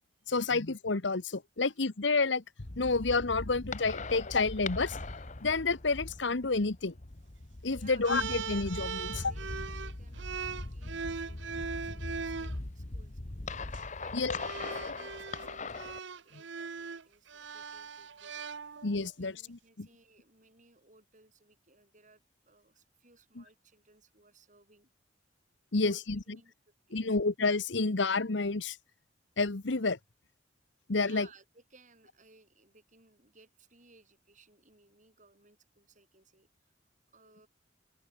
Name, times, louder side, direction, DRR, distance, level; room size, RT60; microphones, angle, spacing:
voice 1, 0.3-2.4 2.8-5.0 5.4-6.9 7.6-9.3 14.1-14.3 14.8-15.0 18.8-19.9 23.4-23.5 25.7-26.2 26.9-28.8 29.4-30.0 30.9-31.3, left 3 dB, 70° left, 1.2 m, -29 dB
sound 1, 2.6-16.0, left 2 dB, 40° left, 1.3 m, -41 dB
voice 2, 7.7-8.2 9.2-13.2 13.9-14.3 14.5-15.9 16.2-18.7 19.2-24.9 25.8-26.5 26.9-27.1 31.0-36.7 37.1-37.5, right 4 dB, 40° right, 7.8 m, -62 dB
sound 2, 8.0-12.6 13.6-13.8 14.3-19.1, right 5 dB, 70° right, 0.8 m, -40 dB
head